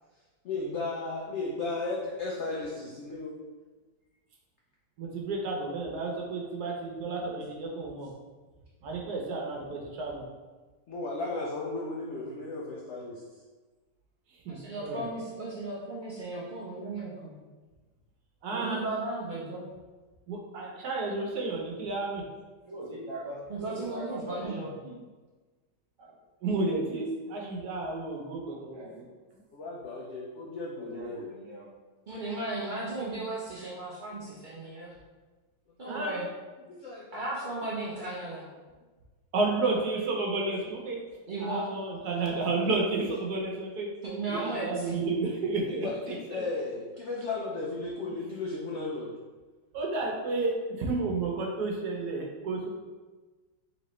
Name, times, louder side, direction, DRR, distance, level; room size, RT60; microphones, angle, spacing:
voice 1, 0.4-3.4 10.9-13.4 29.5-31.2 34.1-34.9 35.8-36.0 36.7-37.2 37.6-38.1 45.7-49.1, left 3 dB, 80° left, -3 dB, 0.6 m, -35 dB
voice 2, 5.0-8.1 8.8-10.2 14.3-15.1 18.4-18.8 20.3-22.2 26.4-29.0 35.9-36.1 39.3-41.0 41.4-43.9 44.3-46.5 49.7-52.7, right 3 dB, 65° right, -1 dB, 1.2 m, -31 dB
voice 3, 14.5-17.3 18.5-19.6 23.5-24.7 32.1-35.0 35.8-36.3 37.1-38.4 41.3-41.7 42.1-42.3 44.0-45.0, right 2 dB, 85° right, -7 dB, 0.4 m, -35 dB
voice 4, 22.7-25.0 26.0-26.1 28.5-29.0 30.7-31.7, right 1 dB, 30° right, -6 dB, 0.5 m, -41 dB
4.0 x 3.2 x 3.1 m, 1.3 s
omnidirectional pair, 1.9 m